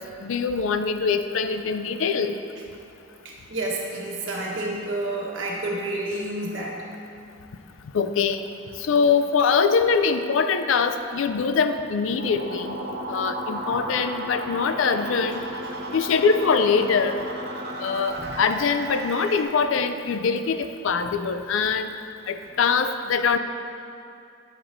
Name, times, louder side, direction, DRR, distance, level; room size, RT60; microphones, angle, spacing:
voice 1, 0.0-2.3 7.9-8.4 8.8-12.7 13.1-15.4 15.9-17.2 17.8-21.9 22.3-23.4, left 5 dB, 70° left, 9 dB, 0.4 m, -23 dB
voice 2, 3.2-6.8 18.2-18.4, right 2 dB, 70° right, -3 dB, 1.4 m, -30 dB
sound 1, 12.2-19.4, right 1 dB, 50° right, 0.8 m, -33 dB
9.9 x 7.7 x 2.6 m, 2.6 s
head